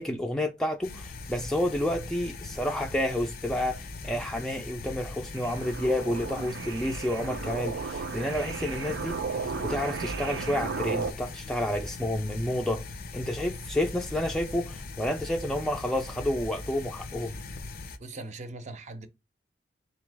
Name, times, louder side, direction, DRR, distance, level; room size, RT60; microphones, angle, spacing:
voice 1, 0.0-12.8 13.1-17.3, left 1 dB, 5° left, 0.4 m, -30 dB
sound 1, 0.8-18.0, left 3 dB, 55° left, 0.5 m, -40 dB
sound 2, 5.3-11.1, right 5 dB, 80° right, 0.4 m, -35 dB
voice 2, 18.0-19.1, right 2 dB, 40° right, 0.6 m, -40 dB
3.9 x 3.0 x 3.3 m
head